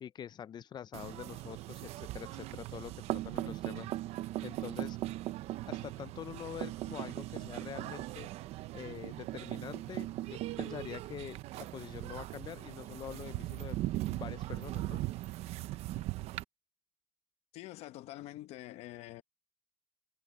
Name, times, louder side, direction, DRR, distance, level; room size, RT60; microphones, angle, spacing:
voice 1, 0.0-3.9 4.4-5.0 5.7-8.3 8.7-13.8 14.1-15.0, left 9 dB, 45° left, 0.5 m, -45 dB
sound 1, 0.9-16.4, right 16 dB, 85° right, 0.7 m, -39 dB
voice 2, 17.5-19.2, left 16 dB, 85° left, 1.0 m, -46 dB
cardioid pair, 125°, 10 cm